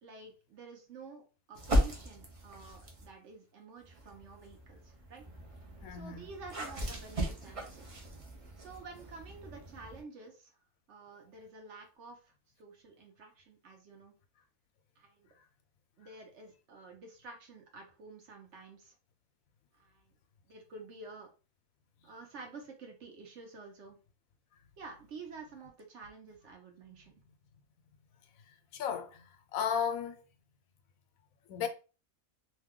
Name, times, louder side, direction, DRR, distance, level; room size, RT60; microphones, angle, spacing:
voice 1, 0.0-1.2 1.5-5.3 5.9-7.8 8.6-10.6 10.9-14.1 15.0-15.3 16.0-18.9 19.7-20.1 20.5-21.3 22.0-24.0 24.8-27.1, right 3 dB, 60° right, 1.0 m, -50 dB
sound 1, 1.5-3.1 3.8-10.0, equal, 40° right, 0.5 m, -37 dB
voice 2, 5.8-6.2 28.7-30.2 31.5-31.7, left 7 dB, 85° left, 1.0 m, -34 dB
2.8 x 2.2 x 3.6 m
omnidirectional pair, 1.4 m